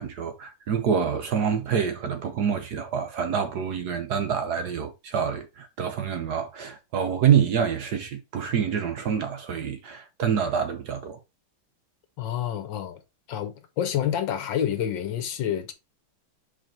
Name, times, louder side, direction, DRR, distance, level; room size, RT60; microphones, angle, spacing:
voice 1, 0.0-11.2, right 7 dB, 60° right, 1.3 m, -26 dB
voice 2, 12.2-13.0 13.3-15.7, left 10 dB, 70° left, 1.5 m, -28 dB
5.0 x 4.5 x 4.3 m
omnidirectional pair, 2.2 m